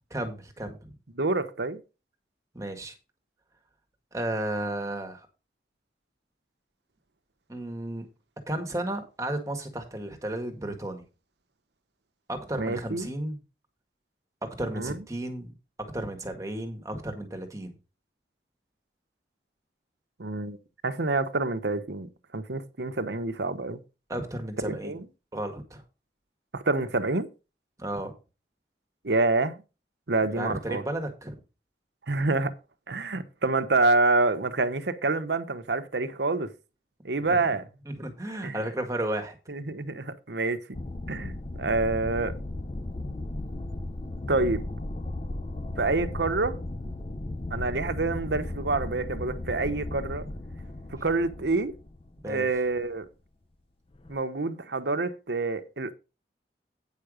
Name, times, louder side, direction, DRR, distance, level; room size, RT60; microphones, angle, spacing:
voice 1, 0.1-0.9 2.5-3.0 4.1-5.3 7.5-8.1 8.5-11.0 12.3-13.4 14.4-15.5 15.8-17.7 24.1-24.9 25.3-25.8 27.8-28.1 30.3-31.4 37.3-37.5 37.9-39.4 51.0-51.1 52.2-52.5, right 1 dB, 20° right, 1.7 m, -33 dB
voice 2, 1.2-1.8 12.5-13.1 14.7-15.0 20.2-20.6 20.8-22.1 22.3-23.8 24.6-25.0 26.5-27.3 29.0-29.6 30.1-30.8 32.1-32.5 32.9-36.5 37.0-37.6 38.4-38.6 39.5-40.8 41.1-42.3 44.3-44.6 45.8-46.6 47.5-50.2 51.0-51.7 52.3-53.0 54.1-55.9, right 3 dB, 80° right, 1.0 m, -27 dB
sound 1, 40.7-52.8 54.0-54.2, left 2 dB, 30° left, 0.6 m, -36 dB
9.4 x 5.7 x 5.1 m
head